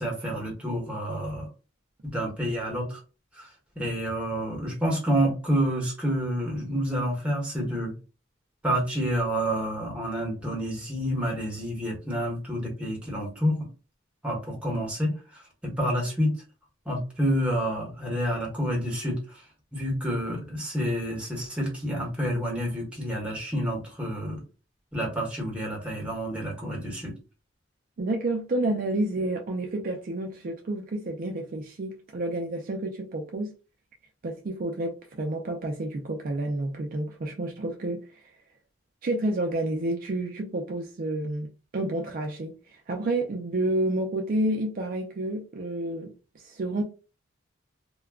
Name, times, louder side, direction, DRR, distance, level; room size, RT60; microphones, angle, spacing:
voice 1, 0.0-1.5 2.0-3.0 3.4-3.5 3.8-7.9 8.6-13.7 14.2-15.1 15.6-16.3 16.9-19.2 19.7-24.4 24.9-27.1, equal, 5° right, 1.0 m, -28 dB
voice 2, 28.0-33.5 34.2-38.2 39.0-46.8, right 1 dB, 45° right, 0.4 m, -30 dB
2.3 x 2.1 x 3.4 m
head